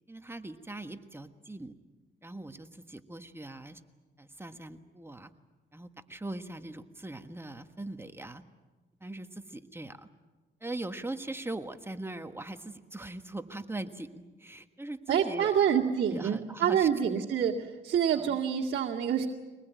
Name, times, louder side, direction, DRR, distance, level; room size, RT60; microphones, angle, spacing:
voice 1, 0.1-1.7 2.2-3.8 4.2-5.3 5.7-8.4 9.0-10.1 10.6-15.6 16.1-17.2 18.1-18.4, right 2 dB, 10° right, 8 dB, 1.5 m, -41 dB
voice 2, 15.1-19.3, right 8 dB, 60° right, -5 dB, 2.2 m, -27 dB
24.0 x 19.5 x 9.2 m, 1.2 s
cardioid pair, 90°, 20 cm